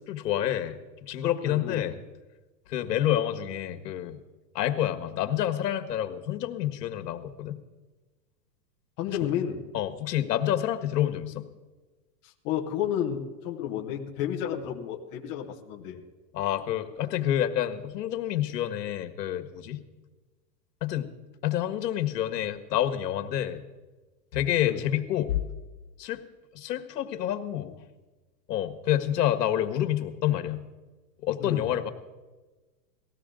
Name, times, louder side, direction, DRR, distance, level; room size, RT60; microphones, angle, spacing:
voice 1, 0.1-0.8 1.1-2.0 2.7-4.2 4.5-7.6 9.7-11.5 16.3-19.8 20.8-21.1 21.4-23.6 24.3-25.5 26.0-26.2 26.5-27.8 28.5-30.6 31.2-31.9, left 11 dB, 70° left, 7 dB, 1.6 m, -28 dB
voice 2, 1.4-1.9 9.0-9.6 12.2-16.0 24.6-24.8 31.4-31.7, left 9 dB, 15° left, 0 dB, 0.5 m, -31 dB
19.0 x 15.0 x 3.8 m, 1.2 s
supercardioid pair, 160°, 50 cm